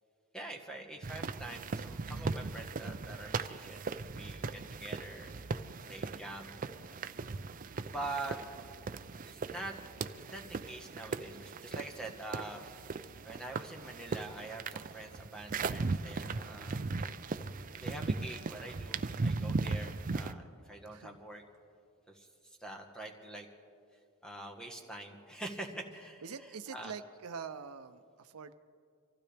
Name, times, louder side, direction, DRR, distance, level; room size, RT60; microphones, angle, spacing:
voice 1, 0.3-5.6 5.9-7.0 7.8-8.4 9.2-9.7 10.3-12.6 13.2-17.2 17.8-21.4 22.1-23.5 24.2-26.9, right 2 dB, 5° left, 2 dB, 1.4 m, -45 dB
sound 1, 1.0-20.3, right 4 dB, 40° right, 0.5 m, -38 dB
voice 2, 6.1-6.5 20.9-21.2 26.2-28.5, right 6 dB, 90° right, 10 dB, 0.6 m, -45 dB
24.5 x 15.5 x 3.4 m, 2.3 s
head